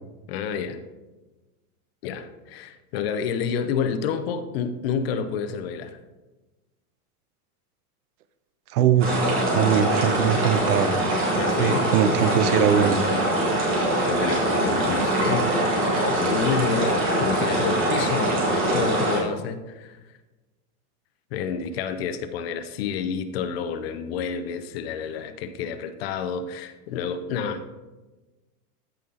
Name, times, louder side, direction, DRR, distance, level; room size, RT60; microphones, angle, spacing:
voice 1, 0.3-0.8 2.0-5.9 11.3-11.9 14.1-15.5 16.1-20.0 21.3-27.6, left 6 dB, 45° left, 10 dB, 0.6 m, -29 dB
voice 2, 8.7-9.2 9.5-11.0 11.6-13.0, right 9 dB, 80° right, 13 dB, 0.9 m, -21 dB
sound 1, 9.0-19.2, right 1 dB, 30° right, 2.7 m, -23 dB
14.5 x 5.5 x 3.8 m, 1.2 s
supercardioid pair, 175°, 45 cm